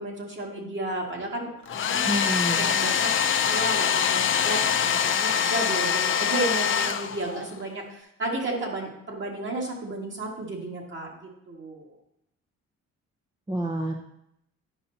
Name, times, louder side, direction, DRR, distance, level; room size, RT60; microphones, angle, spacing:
voice 1, 0.0-2.3 2.6-11.9, right 2 dB, 40° right, -1 dB, 2.1 m, -33 dB
Domestic sounds home sounds, 1.7-7.5, left 8 dB, 40° left, 0.5 m, -24 dB
voice 2, 2.0-2.7 13.5-13.9, right 1 dB, 15° right, 2 dB, 0.7 m, -28 dB
10.0 x 5.4 x 2.8 m, 0.79 s
cardioid pair, 90°, 30 cm